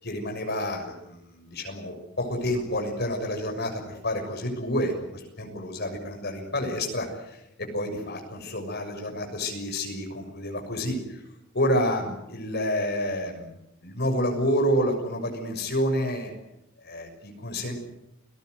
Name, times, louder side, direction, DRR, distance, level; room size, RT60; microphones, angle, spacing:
voice 1, 0.0-11.2 11.5-16.3 16.8-17.8, equal, 50° left, 4 dB, 6.7 m, -29 dB
29.5 x 19.0 x 8.1 m, 0.84 s
head